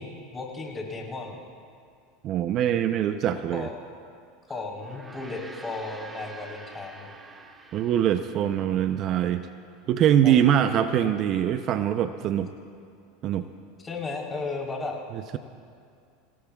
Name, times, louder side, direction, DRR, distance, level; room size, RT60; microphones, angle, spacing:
voice 1, 0.0-1.4 3.5-3.7 4.5-7.1 10.2-11.2 13.8-15.0, left 3 dB, 20° left, -1 dB, 3.7 m, -35 dB
voice 2, 2.2-3.7 7.7-9.4 9.9-12.5 13.2-13.5, right 10 dB, 45° right, 10 dB, 0.6 m, -23 dB
Gong, 4.7-9.3, right 3 dB, 20° right, 1.3 m, -47 dB
26.5 x 17.5 x 2.4 m, 2.3 s
hypercardioid pair, 100°, 0 cm